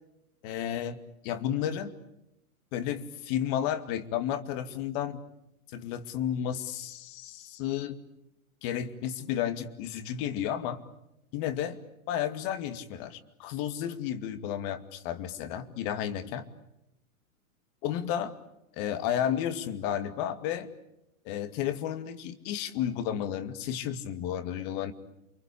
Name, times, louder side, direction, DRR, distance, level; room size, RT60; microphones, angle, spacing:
voice 1, 0.4-1.0 1.2-1.9 2.7-5.2 5.7-8.0 8.6-10.8 11.3-11.8 12.1-16.4 17.8-18.4 18.8-20.7 21.2-24.9, left 10 dB, 40° left, 10 dB, 2.5 m, -32 dB
28.5 x 24.0 x 8.6 m, 0.85 s
hypercardioid pair, 125°, 43 cm